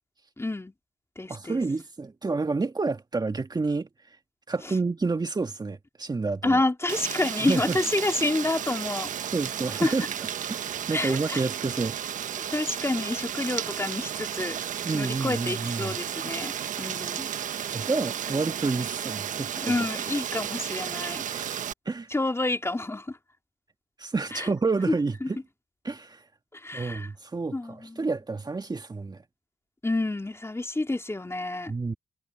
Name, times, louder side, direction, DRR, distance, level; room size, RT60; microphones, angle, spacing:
voice 1, 0.4-0.7 1.1-1.6 6.4-9.1 9.8-9.9 10.9-11.4 12.5-14.6 14.9-16.5 16.8-17.3 19.6-21.2 22.1-23.2 24.3-24.5 24.9-25.0 25.2-25.3 26.5-27.1 27.5-28.1 29.8-31.7, left 2 dB, 20° left, 3.5 m, -28 dB
voice 2, 1.3-4.2 4.5-6.6 7.4-7.8 9.3-10.1 10.5-12.0 14.8-16.0 17.7-19.7 21.3-22.1 24.0-25.4 25.8-26.2 26.7-29.2 31.7-31.9, right 3 dB, 30° right, 1.6 m, -29 dB
Rain, 6.9-21.7, right 9 dB, 70° right, 1.3 m, -33 dB
supercardioid pair, 50°, 14 cm